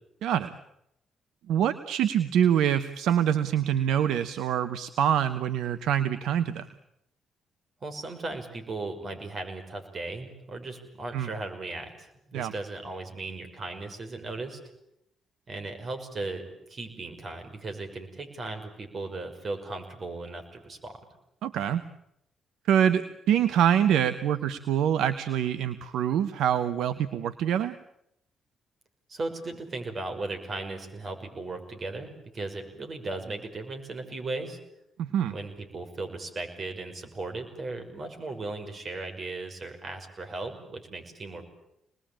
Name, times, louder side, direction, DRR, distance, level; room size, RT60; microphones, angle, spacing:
voice 1, 0.2-0.5 1.5-6.7 11.1-11.3 12.3-12.5 21.4-21.8 22.7-27.7 35.0-35.3, right 9 dB, 75° right, 12 dB, 1.0 m, -25 dB
voice 2, 7.8-14.6 15.5-21.0 29.1-34.6 35.3-41.4, right 2 dB, 50° right, 6 dB, 5.7 m, -37 dB
26.5 x 20.5 x 8.9 m, 0.81 s
hypercardioid pair, 50°, 0 cm